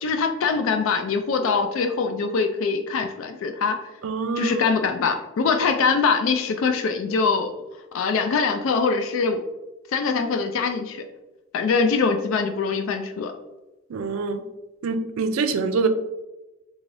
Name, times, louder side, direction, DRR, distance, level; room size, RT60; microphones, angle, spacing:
voice 1, 0.0-3.8 4.4-7.5 7.9-9.4 9.9-11.0 11.5-13.3, left 5 dB, 70° left, 6 dB, 0.3 m, -23 dB
voice 2, 4.0-4.6 13.9-14.4 14.8-15.9, right 4 dB, 80° right, 9 dB, 0.4 m, -25 dB
3.6 x 3.2 x 2.6 m, 1.0 s
head